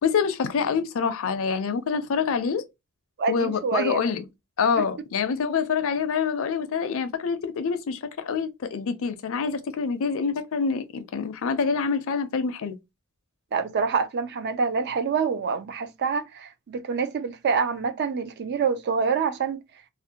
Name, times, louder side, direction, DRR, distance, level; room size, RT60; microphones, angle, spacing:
voice 1, 0.0-2.7 3.3-4.2 4.6-12.8, left 6 dB, 70° left, 0.4 m, -26 dB
voice 2, 3.2-4.0 13.5-19.6, right 5 dB, 50° right, 0.4 m, -26 dB
2.5 x 2.1 x 2.7 m
head